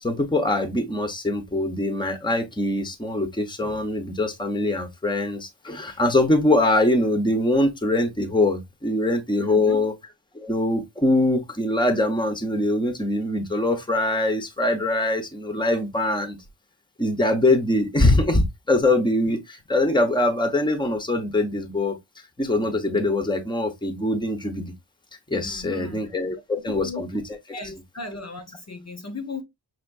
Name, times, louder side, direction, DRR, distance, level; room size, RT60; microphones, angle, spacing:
voice 1, 0.0-9.9 10.3-16.4 17.0-22.0 22.4-24.7 25.3-27.2 27.5-27.6, left 2 dB, 10° left, 1.0 m, -23 dB
voice 2, 9.4-9.8 25.4-27.1 27.5-29.4, left 3 dB, 35° left, 0.9 m, -37 dB
5.8 x 2.8 x 2.6 m
wide cardioid pair, 85°, 44 cm